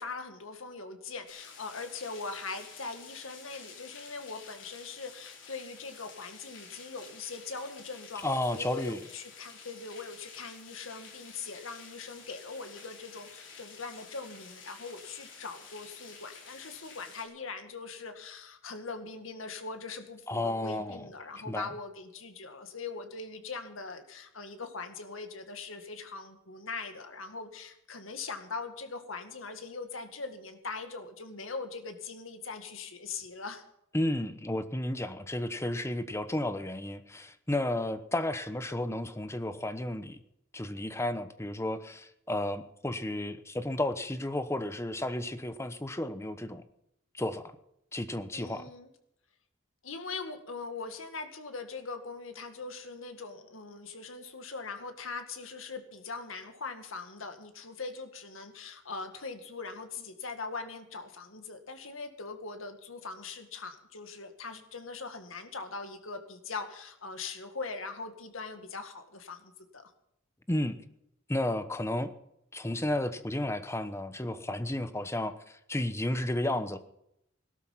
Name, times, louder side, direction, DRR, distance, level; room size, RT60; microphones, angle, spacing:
voice 1, 0.0-33.6 48.3-48.9 49.8-69.9, left 4 dB, 90° left, 7 dB, 2.1 m, -41 dB
sound 1, 1.3-17.3, left 5 dB, 65° left, 4.2 m, -50 dB
voice 2, 8.2-9.0 20.3-21.1 21.5-21.7 33.9-40.2 40.5-46.6 47.1-47.5 47.9-48.6 70.5-70.8 71.3-72.1 72.5-76.8, left 1 dB, 15° left, 11 dB, 0.9 m, -32 dB
18.0 x 12.5 x 5.8 m, 0.78 s
head